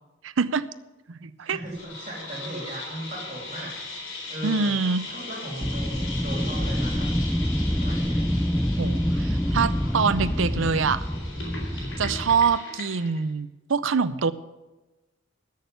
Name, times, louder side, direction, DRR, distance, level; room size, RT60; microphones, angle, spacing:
voice 1, 0.2-0.6 1.1-1.6 4.4-5.0 8.8-11.0 11.8-14.3, right 5 dB, 80° right, 15 dB, 0.6 m, -25 dB
voice 2, 1.4-4.7 5.0-7.1 7.8-8.3, right 1 dB, 35° right, -3 dB, 3.2 m, -37 dB
sound 1, 1.7-13.2, left 2 dB, 70° left, 4.0 m, -39 dB
Wind, 5.6-12.6, equal, 5° left, 0.3 m, -26 dB
13.5 x 6.6 x 8.0 m, 1.1 s
head